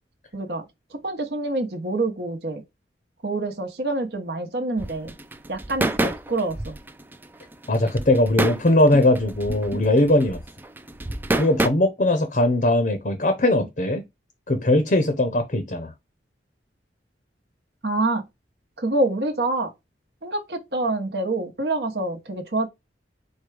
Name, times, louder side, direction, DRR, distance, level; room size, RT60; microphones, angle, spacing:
voice 1, 0.3-2.6 3.2-5.1 5.5-6.8 17.8-18.2 18.8-19.7 20.2-22.7, right 2 dB, 60° right, 1.0 m, -26 dB
sound 1, 4.8-11.7, right 1 dB, 10° right, 0.3 m, -28 dB
voice 2, 7.7-10.4 11.3-14.0 14.5-15.9, left 1 dB, 45° left, 0.7 m, -20 dB
4.5 x 2.2 x 4.7 m
head